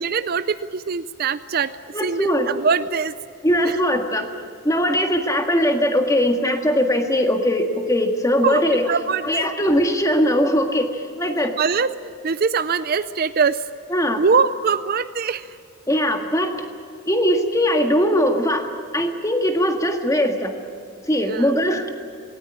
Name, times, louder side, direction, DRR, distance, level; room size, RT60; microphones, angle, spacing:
voice 1, 0.0-3.1 3.6-3.8 8.4-9.5 11.4-13.7 14.2-15.6 21.2-21.5, right 5 dB, 45° right, 14 dB, 0.5 m, -23 dB
voice 2, 1.9-2.5 3.4-4.3 4.6-8.9 9.2-11.5 13.9-14.2 15.9-16.5 17.0-18.7 18.9-20.5 21.1-21.9, equal, 15° left, 4 dB, 1.8 m, -20 dB
18.5 x 18.5 x 10.0 m, 2.4 s
head